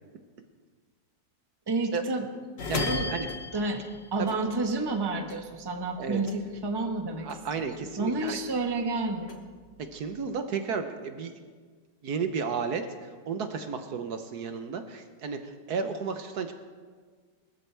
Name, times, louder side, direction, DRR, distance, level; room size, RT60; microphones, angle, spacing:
voice 1, 1.7-2.3 2.8-3.1 3.5-3.8 4.1-7.3 7.6-7.7 8.0-9.4, right 2 dB, 15° right, 3 dB, 1.0 m, -30 dB
sound 1, 2.6-5.0 5.3-7.0 7.3-8.7 9.1-10.2, left 3 dB, 40° left, 1.4 m, -36 dB
voice 2, 2.7-3.3 4.2-4.3 6.0-6.2 7.2-8.4 9.9-11.3 12.0-16.5, right 5 dB, 65° right, 7 dB, 1.4 m, -33 dB
22.0 x 13.5 x 3.4 m, 1.6 s
omnidirectional pair, 1.9 m